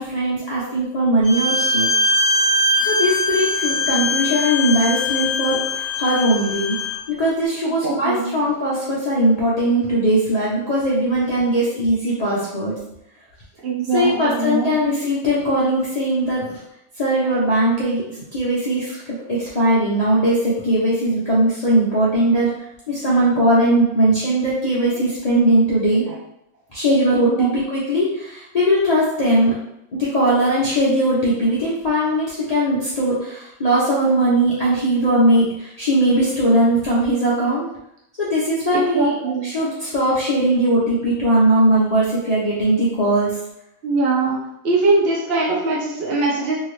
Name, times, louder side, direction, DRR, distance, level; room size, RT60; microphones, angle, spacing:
voice 1, 0.0-1.9 2.8-5.6 6.0-6.7 7.1-12.8 13.9-16.5 17.0-22.5 22.9-26.0 26.7-29.5 29.9-37.7 38.2-39.1 39.4-43.3, right 1 dB, 60° left, -9 dB, 0.4 m, -19 dB
Bowed string instrument, 1.2-7.0, left 2 dB, 30° right, 0.9 m, -21 dB
voice 2, 7.8-8.3 13.6-14.7 26.1-26.2 27.3-27.5 38.7-39.4 43.8-44.4 44.6-46.6, right 3 dB, 60° right, -4 dB, 0.6 m, -21 dB
2.8 x 2.7 x 3.1 m, 0.81 s
omnidirectional pair, 1.7 m